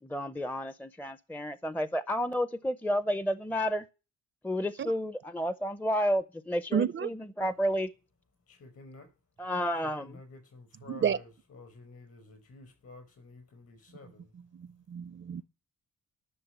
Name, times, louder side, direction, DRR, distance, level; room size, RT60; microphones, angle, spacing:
voice 1, 0.0-3.9 4.4-7.9 9.4-10.2, equal, 5° left, 0.6 m, -31 dB
voice 2, 6.7-7.1 10.9-11.2 14.3-15.4, right 8 dB, 40° right, 0.5 m, -31 dB
voice 3, 8.5-9.1 9.8-14.3, left 3 dB, 55° left, 5.4 m, -51 dB
11.0 x 6.5 x 9.0 m
cardioid pair, 120°, 29 cm